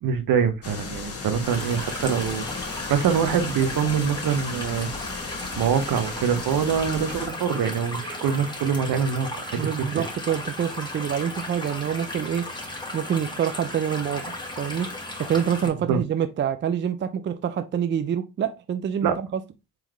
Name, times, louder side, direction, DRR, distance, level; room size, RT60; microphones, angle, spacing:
voice 1, 0.0-4.9 5.6-9.7 9.9-10.1 15.9-16.0 19.0-19.1, right 7 dB, 65° right, 0.8 m, -24 dB
sound 1, 0.6-7.3, left 4 dB, 40° left, 1.1 m, -36 dB
sound 2, 1.4-15.7, left 1 dB, 10° left, 1.4 m, -35 dB
voice 2, 9.5-12.5 12.9-14.9 15.2-19.3, right 8 dB, 30° right, 0.4 m, -26 dB
3.8 x 3.0 x 3.0 m
hypercardioid pair, 50°, 38 cm